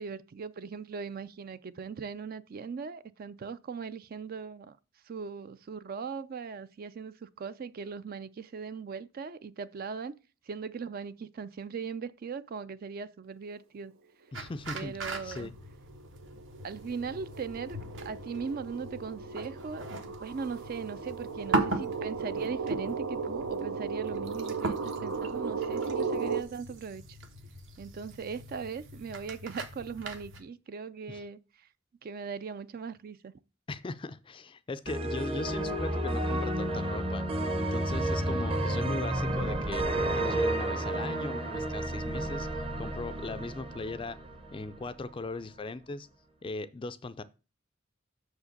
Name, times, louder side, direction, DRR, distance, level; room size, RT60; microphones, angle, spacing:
voice 1, 0.0-4.8 5.1-10.1 10.5-13.9 14.7-15.5 16.6-19.8 20.2-27.2 27.8-31.4 32.0-33.3, right 5 dB, 45° right, 0.4 m, -39 dB
voice 2, 14.3-15.0 15.2-15.5 31.1-31.2 33.7-37.3 37.6-39.8 40.1-42.5 42.8-44.2 44.5-46.1 46.4-47.2, left 3 dB, 25° left, 0.4 m, -38 dB
sound 1, 14.3-30.4, right 2 dB, 65° right, 1.2 m, -39 dB
sound 2, 15.0-15.1 15.6-26.4, right 5 dB, 85° right, 0.7 m, -36 dB
sound 3, 34.9-44.9, right 1 dB, 25° right, 0.8 m, -31 dB
6.4 x 4.9 x 6.6 m
head